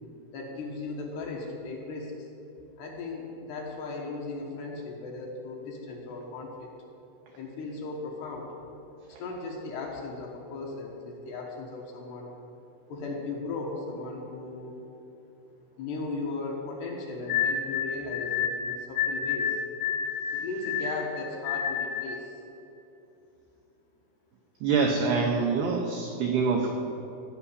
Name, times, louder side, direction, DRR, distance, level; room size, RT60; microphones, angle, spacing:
voice 1, 0.3-2.3 2.8-6.7 7.4-8.5 9.1-12.3 12.9-14.8 15.8-19.6 20.3-22.4, left 3 dB, 65° left, -1 dB, 3.0 m, -37 dB
sound 1, 17.3-22.2, left 7 dB, 85° left, 3.8 m, -29 dB
voice 2, 24.6-26.7, right 4 dB, 90° right, 1 dB, 2.2 m, -25 dB
15.5 x 5.7 x 9.9 m, 2.8 s
omnidirectional pair, 5.9 m